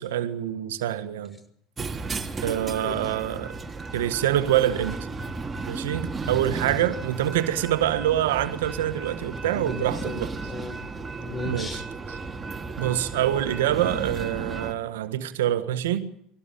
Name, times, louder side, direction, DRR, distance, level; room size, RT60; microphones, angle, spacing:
voice 1, 0.0-1.4 2.4-3.6 3.9-5.0 5.7-10.3 11.4-11.8 12.1-12.2 12.8-16.1, right 12 dB, 75° right, 1.6 m, -26 dB
sound 1, 1.8-14.7, right 3 dB, 25° right, 2.7 m, -34 dB
voice 2, 9.5-11.9, left 3 dB, 20° left, 6.4 m, -36 dB
22.0 x 17.5 x 9.2 m
hypercardioid pair, 75°, 0 cm